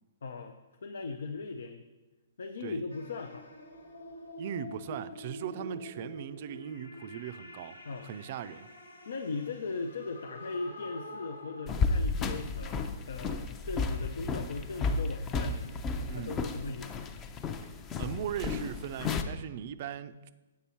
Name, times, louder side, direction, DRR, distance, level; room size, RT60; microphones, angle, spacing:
voice 1, 0.2-0.5 0.8-1.9 2.4-3.5 7.9-8.1 9.1-16.9, left 4 dB, 70° left, 0.5 m, -38 dB
sound 1, 2.9-11.8, equal, 85° left, 1.2 m, -46 dB
voice 2, 4.4-7.8 8.0-8.7 16.1-16.4 18.0-20.2, right 9 dB, 45° right, 0.4 m, -39 dB
sound 2, 11.7-19.2, left 4 dB, 20° left, 0.5 m, -33 dB
8.3 x 5.6 x 4.3 m
figure-of-eight pair, 125°, 0 cm